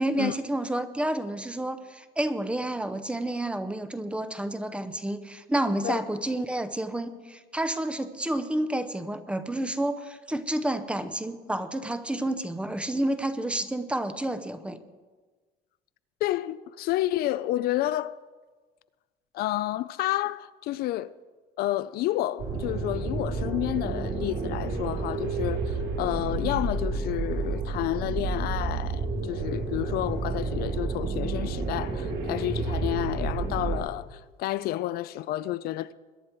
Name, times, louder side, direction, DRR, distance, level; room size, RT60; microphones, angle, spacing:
voice 1, 0.0-14.8, right 1 dB, 5° right, 0.7 m, -30 dB
voice 2, 16.2-18.2 19.3-21.1 21.6-35.9, left 15 dB, 60° left, 0.4 m, -30 dB
sound 1, 22.4-33.8, right 3 dB, 55° right, 2.9 m, -30 dB
22.0 x 10.5 x 4.4 m
cardioid pair, 155°, 17 cm